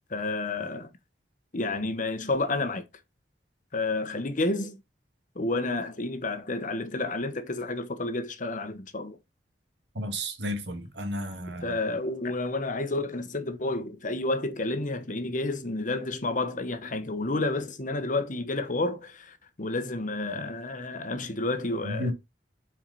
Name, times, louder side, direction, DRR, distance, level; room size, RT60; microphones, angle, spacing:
voice 1, 0.1-0.9 1.5-2.8 3.7-4.8 5.3-9.2 11.6-22.1, left 2 dB, 45° left, 1.2 m, -30 dB
voice 2, 10.0-11.8 21.8-22.1, equal, 75° right, 2.2 m, -32 dB
7.5 x 4.9 x 4.2 m
head